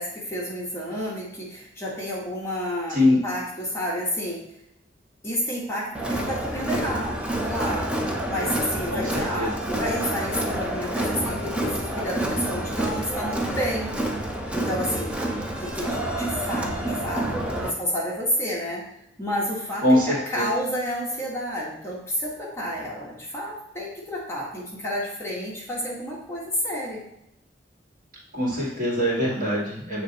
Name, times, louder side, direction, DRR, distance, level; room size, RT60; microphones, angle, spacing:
voice 1, 0.0-4.4 5.2-7.9 8.3-13.9 14.5-15.2 15.6-18.8 19.2-27.0, equal, 15° left, -5 dB, 1.2 m, -30 dB
Crowd, 5.9-17.7, right 1 dB, 5° right, 0.6 m, -28 dB
voice 2, 8.9-9.5 19.8-20.5 28.3-30.0, left 1 dB, 50° right, -6 dB, 2.1 m, -23 dB
7.4 x 3.2 x 4.0 m, 0.81 s
head